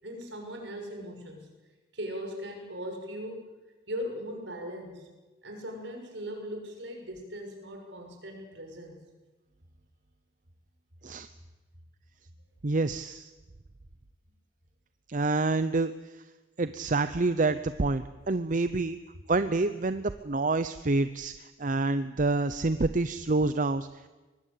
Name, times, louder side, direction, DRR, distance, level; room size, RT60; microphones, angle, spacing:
voice 1, 0.0-1.5 1.9-3.5 3.9-5.1 5.4-9.0, equal, 65° right, 3 dB, 6.4 m, -39 dB
voice 2, 12.6-13.3 15.1-15.9 16.6-19.0 19.3-23.9, right 3 dB, 45° right, 12 dB, 0.7 m, -27 dB
24.0 x 20.0 x 8.4 m, 1.2 s
head